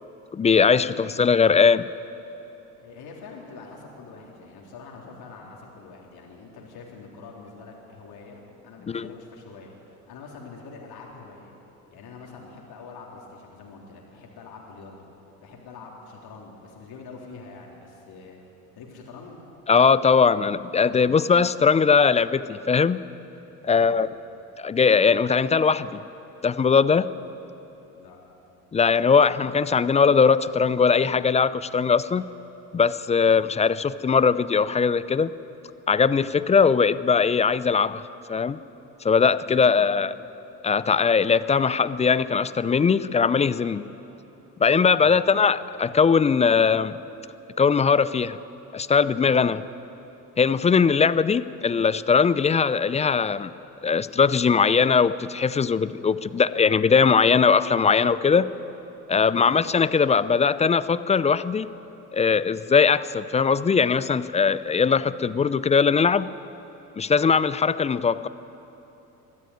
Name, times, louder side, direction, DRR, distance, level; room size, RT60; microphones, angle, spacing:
voice 1, 0.3-1.9 8.9-9.1 19.7-23.0 23.6-24.1 24.6-26.0 26.4-27.1 28.7-32.2 32.7-35.3 35.9-38.0 38.3-38.6 39.0-40.2 40.6-43.8 44.6-47.0 47.6-48.4 48.7-49.6 50.4-53.5 53.8-58.5 59.1-61.7 62.1-66.3 67.0-68.3, left 5 dB, 15° left, 16 dB, 0.4 m, -20 dB
voice 2, 2.8-11.5 11.9-15.0 15.4-19.4 23.6-24.0 28.0-28.2 39.5-39.9 45.0-45.2 59.2-59.5, left 4 dB, 50° left, -2 dB, 3.8 m, -45 dB
21.5 x 13.0 x 9.4 m, 3.0 s
hypercardioid pair, 70°, 47 cm